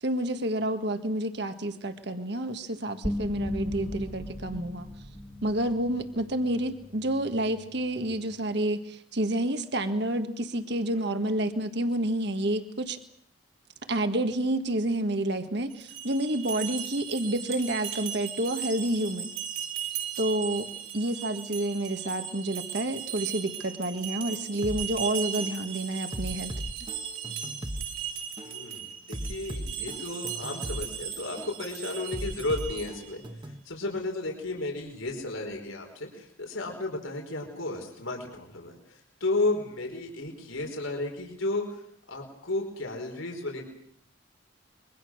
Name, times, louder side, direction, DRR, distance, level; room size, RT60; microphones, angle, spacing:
voice 1, 0.0-4.9 5.4-13.0 13.9-19.3 20.2-20.7 20.9-26.5, right 1 dB, 55° right, 8 dB, 1.7 m, -29 dB
sound 1, 3.0-8.1, left 1 dB, 10° left, 1.7 m, -38 dB
sound 2, 15.7-33.2, right 9 dB, 85° right, 5.1 m, -37 dB
sound 3, 24.6-24.8 25.4-25.6 26.1-27.8 28.4-28.6 29.1-30.8 31.4-31.6 32.1-33.6, equal, 25° right, 1.3 m, -37 dB
voice 2, 28.4-33.2 33.6-41.8 42.1-43.7, left 2 dB, 85° left, 2 dB, 4.9 m, -33 dB
26.5 x 23.5 x 6.4 m, 0.64 s
head